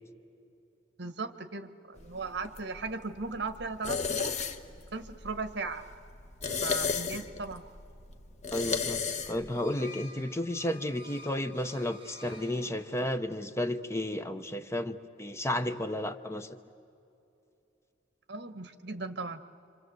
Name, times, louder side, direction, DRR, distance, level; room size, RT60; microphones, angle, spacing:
voice 1, 1.0-4.3 4.9-5.9 6.6-7.6 18.3-19.4, right 3 dB, 65° right, 11 dB, 1.3 m, -37 dB
sound 1, 2.0-9.6, left 5 dB, 40° left, 1.1 m, -35 dB
voice 2, 8.5-9.0 9.3-16.6, left 1 dB, 15° left, 9 dB, 0.8 m, -32 dB
sound 2, 9.1-13.3, left 2 dB, 30° right, 1.8 m, -51 dB
27.0 x 26.0 x 7.9 m, 2.7 s
head